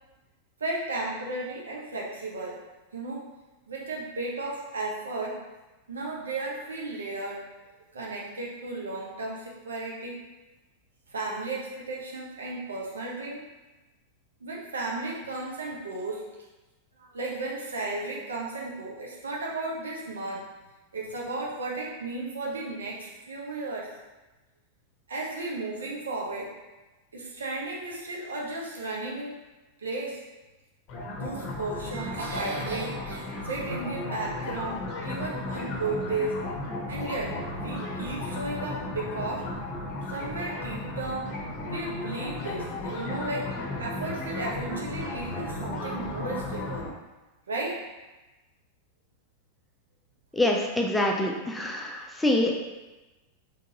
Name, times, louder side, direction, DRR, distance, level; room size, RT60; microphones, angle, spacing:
voice 1, 0.6-2.6 2.9-3.2 3.7-5.4 5.9-7.4 7.9-10.2 11.1-13.4 14.4-16.2 17.0-20.4 20.9-23.9 25.1-26.5 27.1-29.3 29.8-30.2 31.1-36.4 36.9-39.4 40.1-41.3 41.7-43.5 43.8-46.9 47.5-47.8, right 2 dB, 70° right, -2 dB, 0.8 m, -34 dB
sound 1, 30.9-46.9, left 2 dB, 40° left, 0.7 m, -35 dB
voice 2, 50.3-52.6, left 1 dB, 5° left, 0 dB, 0.5 m, -25 dB
3.8 x 3.3 x 2.7 m, 1.1 s
figure-of-eight pair, 90°, 0 cm